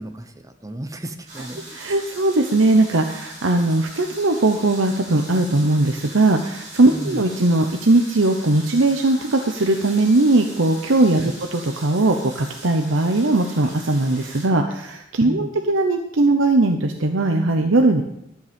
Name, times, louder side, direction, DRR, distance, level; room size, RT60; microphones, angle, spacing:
voice 1, 0.0-1.6 6.9-7.2 11.2-11.4 15.2-15.5, right 1 dB, 15° right, 8 dB, 0.9 m, -33 dB
sound 1, 1.3-14.5, right 1 dB, 45° right, 5.6 m, -40 dB
voice 2, 1.7-18.0, right 2 dB, 75° right, 4 dB, 0.9 m, -19 dB
12.5 x 8.2 x 5.2 m, 0.78 s
head